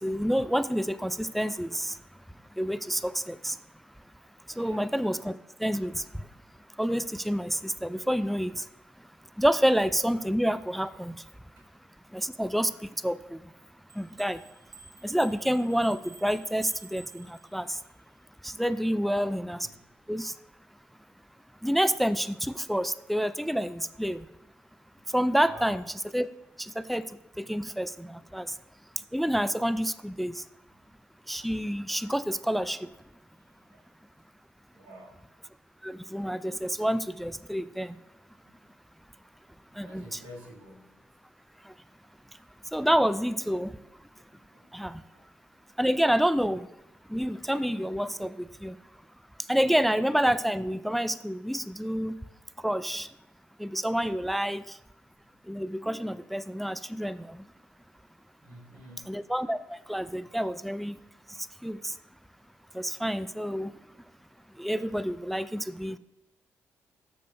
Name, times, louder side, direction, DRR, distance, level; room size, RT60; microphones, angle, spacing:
voice 1, 0.0-2.0 2.6-3.6 4.6-5.3 5.6-6.0 6.8-8.6 9.4-11.1 12.1-12.7 13.0-13.4 14.0-14.4 15.0-17.8 18.4-19.6 20.1-20.3 21.6-24.2 25.1-25.8 26.1-26.3 26.6-27.0 27.4-28.5 29.1-30.4 31.3-32.8 35.8-38.0 39.8-40.2 42.7-43.7 44.7-45.0 45.8-46.7 47.1-48.7 49.5-52.2 52.6-53.1 53.6-54.8 55.5-57.4 59.1-60.9 61.6-61.9 62.7-63.7 64.6-66.0, equal, ahead, 14 dB, 0.3 m, -28 dB
voice 2, 4.5-4.9 11.6-11.7 18.9-19.4 19.6-19.8 24.7-24.8 25.5-25.8 28.3-28.4 33.4-33.8 34.7-35.3 39.8-41.0 44.3-44.9 45.1-45.3 58.4-59.2, equal, 85° right, -1 dB, 1.7 m, -49 dB
sound 1, 13.9-17.9, right 5 dB, 50° right, 0.7 m, -51 dB
13.0 x 6.8 x 2.2 m, 0.89 s
hypercardioid pair, 40°, 7 cm